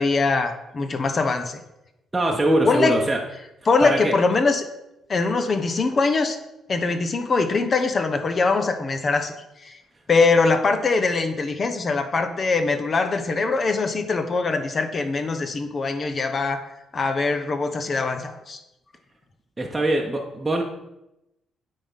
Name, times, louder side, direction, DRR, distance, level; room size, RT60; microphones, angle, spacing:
voice 1, 0.0-1.6 2.6-3.0 3.7-4.7 5.1-6.4 6.7-9.3 9.6-9.8 10.1-16.6 16.9-18.6, left 4 dB, 40° left, 8 dB, 0.9 m, -22 dB
voice 2, 2.1-3.2 3.8-4.1 19.6-20.6, right 1 dB, 20° right, -1 dB, 0.9 m, -22 dB
9.0 x 3.7 x 5.6 m, 0.90 s
cardioid pair, 90°, 0 cm